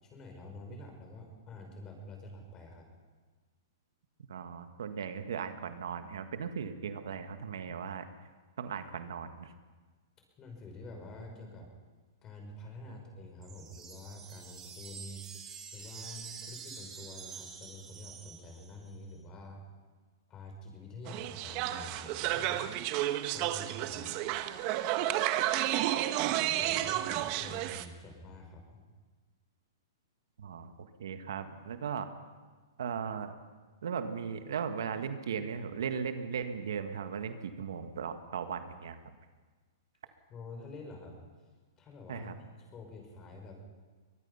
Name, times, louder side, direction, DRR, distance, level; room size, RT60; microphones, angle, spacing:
voice 1, 0.0-2.9 10.4-11.7 12.2-15.3 15.7-19.6 20.3-22.7 23.3-24.3 25.1-25.2 26.3-28.8 40.3-41.2 41.8-42.4 42.7-43.6, left 2 dB, 25° left, 3 dB, 6.1 m, -48 dB
voice 2, 4.3-8.1 8.6-9.5 30.4-30.7 31.0-32.1 32.8-33.3 33.8-39.0 42.1-42.3, right 7 dB, 75° right, 8 dB, 1.7 m, -37 dB
sound 1, 13.4-18.9, right 6 dB, 20° right, 3.2 m, -47 dB
sound 2, 21.1-27.8, right 13 dB, 40° right, 1.2 m, -31 dB
23.0 x 19.5 x 5.7 m, 1.4 s
hypercardioid pair, 135°, 2 cm